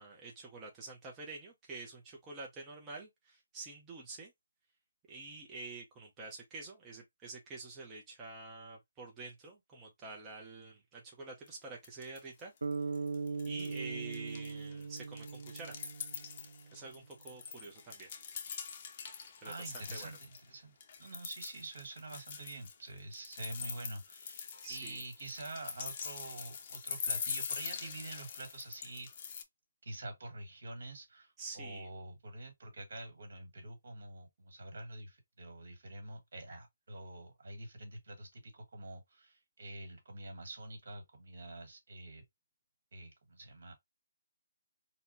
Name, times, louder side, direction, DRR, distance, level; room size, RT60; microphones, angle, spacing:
voice 1, 0.0-4.3 5.1-12.5 13.5-15.7 16.7-18.1 19.4-20.1 24.6-25.0 31.4-31.9, right 3 dB, 15° right, 0.6 m, -47 dB
sound 1, 11.5-11.6 11.8-12.4 12.7-13.8 14.1-20.4 20.8-29.4, left 7 dB, 40° left, 0.6 m, -43 dB
sound 2, 12.6-16.9, right 4 dB, 90° right, 0.3 m, -40 dB
voice 2, 19.4-20.7 21.0-29.1 29.8-42.2 42.9-43.8, right 2 dB, 65° right, 1.7 m, -46 dB
4.1 x 2.1 x 2.6 m
hypercardioid pair, 160°, 0 cm